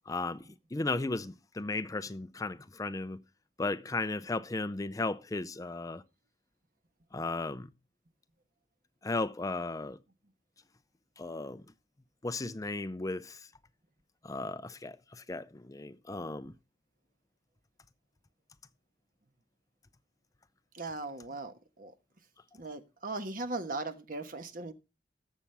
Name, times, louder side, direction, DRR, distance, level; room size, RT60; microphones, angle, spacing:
voice 1, 0.1-0.4 0.7-3.2 3.6-6.0 7.1-7.7 9.0-10.0 11.2-11.6 12.2-13.4 14.2-16.5, left 2 dB, 20° left, 0.5 m, -35 dB
voice 2, 20.8-21.5 21.8-21.9 22.6-24.7, right 2 dB, 50° right, 1.3 m, -38 dB
19.0 x 7.3 x 3.4 m
head